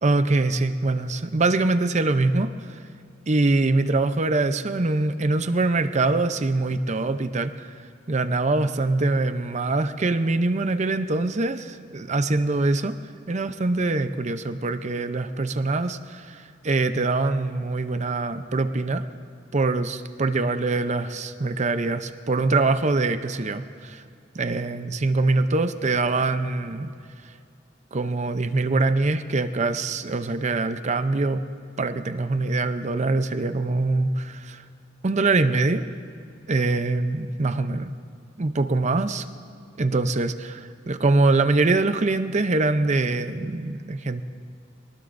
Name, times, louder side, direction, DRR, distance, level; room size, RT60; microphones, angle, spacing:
voice 1, 0.0-2.5 3.3-7.7 8.1-12.9 13.3-19.0 19.5-24.0 24.3-26.9 27.9-31.4 31.8-34.6 35.0-35.8 36.5-37.9 38.4-39.2 39.8-44.2, right 3 dB, 40° right, 10 dB, 0.6 m, -23 dB
25.5 x 19.5 x 2.6 m, 2.4 s
head